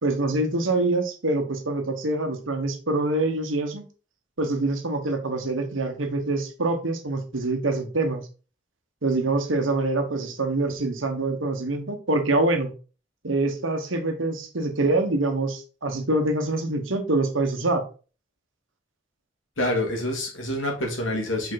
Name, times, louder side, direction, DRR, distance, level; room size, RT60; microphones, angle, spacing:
voice 1, 0.0-3.8 4.4-8.3 9.0-12.7 13.2-17.8, right 2 dB, 90° right, 6 dB, 1.3 m, -25 dB
voice 2, 19.6-21.5, left 1 dB, 85° left, 1 dB, 2.3 m, -27 dB
5.5 x 4.9 x 4.1 m, 0.36 s
head